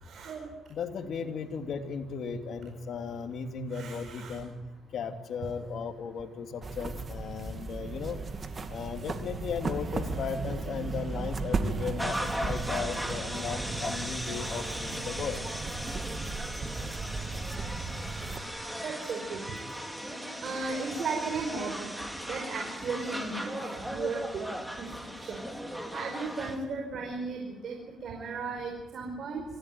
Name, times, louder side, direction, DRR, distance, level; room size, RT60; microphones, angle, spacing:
voice 1, 0.0-0.5 3.7-4.4 16.6-16.7 18.8-19.5 20.1-21.9 22.2-23.5 23.8-24.4 24.8-24.9 25.2-25.4 25.9-29.4, right 4 dB, 60° right, 2 dB, 5.0 m, -36 dB
voice 2, 0.7-4.6 4.9-8.2 8.7-15.4, left 5 dB, 65° left, 5 dB, 3.0 m, -36 dB
sound 1, 6.6-18.4, right 3 dB, 40° right, 2.6 m, -36 dB
sound 2, 12.0-26.6, equal, 5° right, 3.5 m, -37 dB
25.5 x 16.5 x 9.5 m, 1.1 s
cardioid pair, 90°, 0 cm